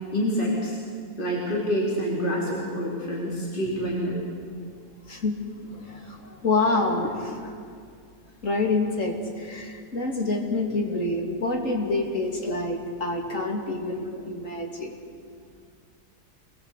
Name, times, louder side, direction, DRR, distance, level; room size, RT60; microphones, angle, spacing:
voice 1, 0.1-0.8 1.2-4.2, equal, 30° left, -4 dB, 4.2 m, -27 dB
voice 2, 5.1-7.5 8.4-14.9, left 2 dB, 50° left, 1 dB, 3.2 m, -27 dB
26.0 x 20.5 x 8.4 m, 2.2 s
omnidirectional pair, 1.7 m